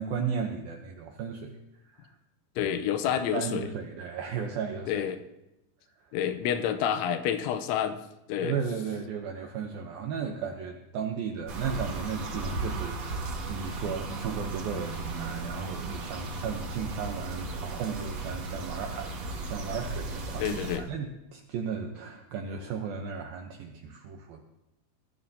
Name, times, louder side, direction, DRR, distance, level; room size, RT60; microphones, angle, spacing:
voice 1, 0.0-1.6 1.9-2.1 3.3-5.0 8.4-24.4, right 6 dB, 85° right, 3 dB, 2.1 m, -35 dB
voice 2, 2.6-3.6 4.9-5.2 6.1-8.0 8.3-8.6 20.4-20.9, left 9 dB, 85° left, 9 dB, 3.1 m, -28 dB
sound 1, 11.5-20.8, right 3 dB, 55° right, 1.9 m, -35 dB
21.5 x 13.0 x 2.8 m, 0.92 s
omnidirectional pair, 5.5 m